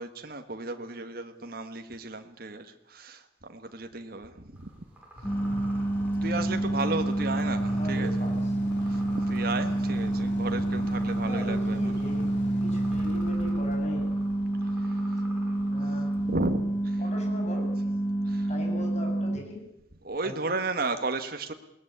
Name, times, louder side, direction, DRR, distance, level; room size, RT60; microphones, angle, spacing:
voice 1, 0.0-4.8 6.2-8.2 8.8-11.9 14.6-15.0 15.5-15.6 16.2-17.0 18.2-18.5 20.0-21.5, right 2 dB, 55° right, 6 dB, 1.7 m, -34 dB
sound 1, 4.6-16.4, right 1 dB, 10° right, 6.3 m, -51 dB
Motorcycle / Idling, 5.2-15.1, right 1 dB, 85° left, 4.7 m, -40 dB
sound 2, 5.2-19.4, right 1 dB, 10° left, 1.4 m, -28 dB
voice 2, 5.4-5.9 7.7-8.4 11.3-14.1 15.7-16.1 17.0-17.7 18.5-19.6 20.2-20.5, left 1 dB, 40° left, 1 dB, 7.6 m, -39 dB
21.0 x 18.5 x 8.2 m, 0.85 s
head